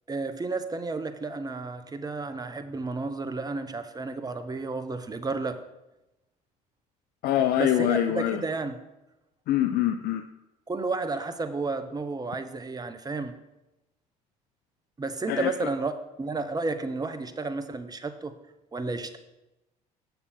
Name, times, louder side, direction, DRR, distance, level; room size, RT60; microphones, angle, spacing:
voice 1, 0.1-5.6 7.6-8.7 10.7-13.3 15.0-15.9 16.2-18.3 18.7-19.2, right 3 dB, 20° right, 10 dB, 0.8 m, -32 dB
voice 2, 7.2-8.4 9.5-10.2 15.3-15.7, left 11 dB, 55° left, 9 dB, 0.5 m, -25 dB
6.9 x 6.8 x 4.3 m, 0.95 s
hypercardioid pair, 60°, 19 cm